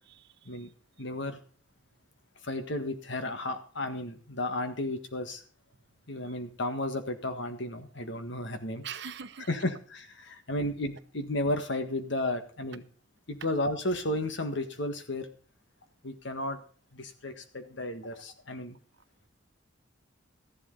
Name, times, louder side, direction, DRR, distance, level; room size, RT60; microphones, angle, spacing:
voice 1, 0.1-0.7 6.2-6.3 8.8-9.5, right 7 dB, 60° right, 11 dB, 0.9 m, -43 dB
voice 2, 1.0-1.4 2.4-5.4 6.1-8.8 9.5-12.8 13.3-15.3 16.0-16.6 16.9-18.8, left 1 dB, 65° left, 8 dB, 1.7 m, -33 dB
14.0 x 11.0 x 4.0 m, 0.42 s
head